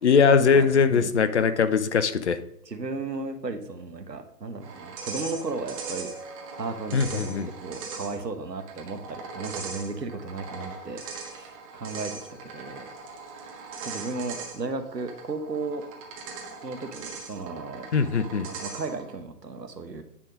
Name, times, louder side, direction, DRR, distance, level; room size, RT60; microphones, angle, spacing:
voice 1, 0.0-2.4 6.9-7.5 17.9-18.5, left 6 dB, 45° left, 11 dB, 0.6 m, -21 dB
voice 2, 0.5-1.1 2.7-6.1 6.6-11.0 11.3-12.1 12.4-12.9 13.8-15.8 16.6-17.9 18.4-20.0, right 3 dB, 85° right, 6 dB, 1.2 m, -35 dB
sound 1, 4.6-19.1, right 4 dB, 20° right, 1.0 m, -40 dB
9.7 x 3.7 x 5.2 m, 0.75 s
figure-of-eight pair, 130°, 48 cm